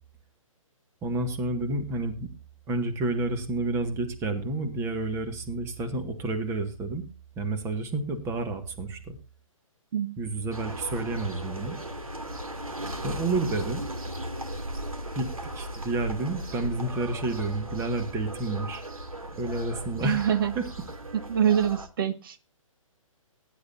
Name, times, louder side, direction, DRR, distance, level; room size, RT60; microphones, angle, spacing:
voice 1, 1.0-2.3 2.7-7.1 7.4-9.2 10.2-11.8 13.0-13.8 15.1-18.8 19.3-20.7, right 2 dB, 15° right, 7 dB, 1.8 m, -30 dB
sound 1, 10.5-21.9, right 1 dB, 85° right, 2.7 m, -37 dB
voice 2, 20.0-20.5 21.3-22.4, right 9 dB, 40° right, 10 dB, 1.0 m, -25 dB
19.0 x 10.5 x 2.7 m, 0.30 s
figure-of-eight pair, 130°, 18 cm